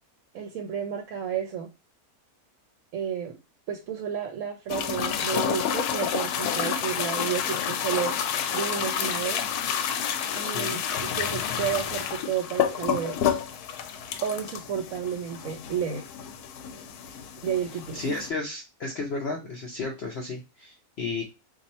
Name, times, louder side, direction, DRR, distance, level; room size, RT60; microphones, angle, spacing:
voice 1, 0.3-1.7 2.9-3.4 3.7-8.2 8.5-9.4 10.3-13.2 14.2-16.0 17.4-18.2, right 8 dB, 65° right, 4 dB, 0.9 m, -31 dB
sound 1, 4.7-18.3, left 8 dB, 85° left, 1.1 m, -29 dB
voice 2, 17.9-21.2, left 3 dB, 55° left, 0 dB, 0.8 m, -33 dB
2.8 x 2.6 x 4.1 m, 0.26 s
omnidirectional pair, 1.6 m